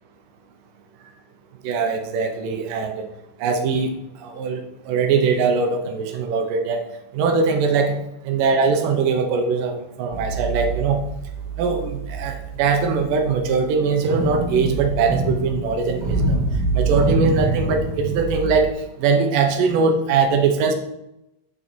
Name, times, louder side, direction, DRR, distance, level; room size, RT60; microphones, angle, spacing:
voice 1, 1.6-3.1 3.4-4.0 4.2-6.8 7.1-8.0 8.2-11.0 11.6-16.4 16.7-18.7 19.0-20.7, right 5 dB, 80° right, 5 dB, 2.6 m, -21 dB
sound 1, 10.1-18.7, right 2 dB, 35° right, 2.0 m, -25 dB
7.4 x 6.7 x 4.5 m, 0.87 s
omnidirectional pair, 3.8 m